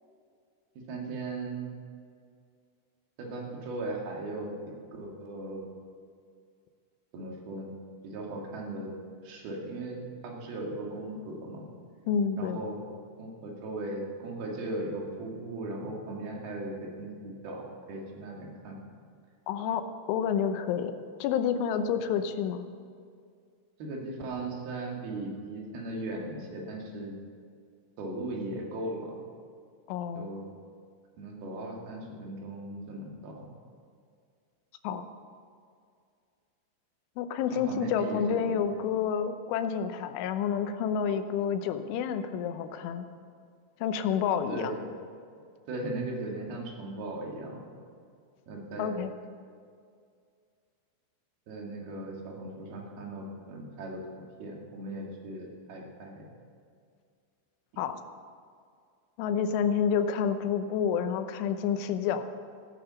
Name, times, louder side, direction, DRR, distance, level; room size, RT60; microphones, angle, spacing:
voice 1, 0.8-1.7 3.2-4.6 4.9-5.6 7.1-7.7 8.0-8.9 9.2-11.6 12.4-12.8 13.2-18.8 23.8-27.1 28.0-29.2 30.1-30.5 31.2-33.5 37.5-38.2 38.5-38.6 44.5-44.8 45.7-47.6 48.5-48.9 51.5-54.0 54.4-56.3, right 2 dB, 60° right, -1 dB, 3.7 m, -38 dB
voice 2, 12.1-12.6 19.5-19.8 20.1-20.9 21.2-22.7 29.9-30.3 34.8-35.1 37.2-43.1 43.8-44.7 48.8-49.1 57.8-58.0 59.2-62.2, left 7 dB, 80° left, 9 dB, 3.2 m, -29 dB
16.0 x 10.5 x 6.9 m, 2.2 s
omnidirectional pair, 5.6 m